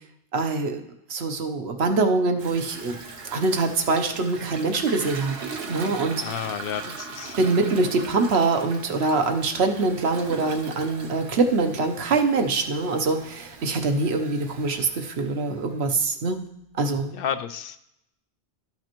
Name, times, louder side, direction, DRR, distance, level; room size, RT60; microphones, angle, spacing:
voice 1, 0.3-0.8 1.1-3.0 3.3-5.3 5.7-6.2 7.4-16.4 16.7-17.1, right 3 dB, 70° right, 6 dB, 1.1 m, -24 dB
Toilet flush, 2.4-15.8, right 4 dB, 90° right, 1.2 m, -40 dB
voice 2, 6.2-7.4 17.1-17.8, left 8 dB, 65° left, 11 dB, 0.7 m, -31 dB
12.5 x 5.9 x 2.9 m, 0.80 s
omnidirectional pair, 1.1 m